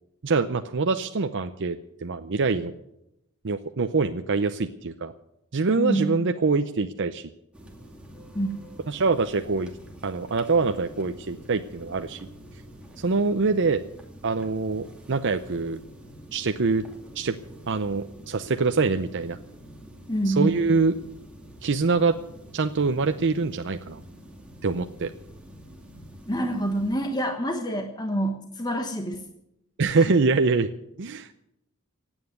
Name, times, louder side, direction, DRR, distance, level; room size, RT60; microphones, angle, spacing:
voice 1, 0.2-2.7 3.4-5.1 5.5-7.3 8.9-9.7 10.0-12.2 13.0-13.8 14.2-15.8 16.3-16.8 17.1-17.4 17.7-19.4 20.2-20.9 21.6-22.2 22.5-24.0 24.6-25.1 29.8-30.7 31.0-31.3, right 4 dB, 55° right, 7 dB, 0.7 m, -24 dB
voice 2, 5.8-6.2 8.3-8.5 20.1-20.5 26.3-29.2, right 1 dB, 20° left, 4 dB, 1.2 m, -26 dB
sound 1, 7.5-27.0, equal, 5° right, 2.3 m, -46 dB
16.5 x 9.0 x 9.3 m, 0.84 s
head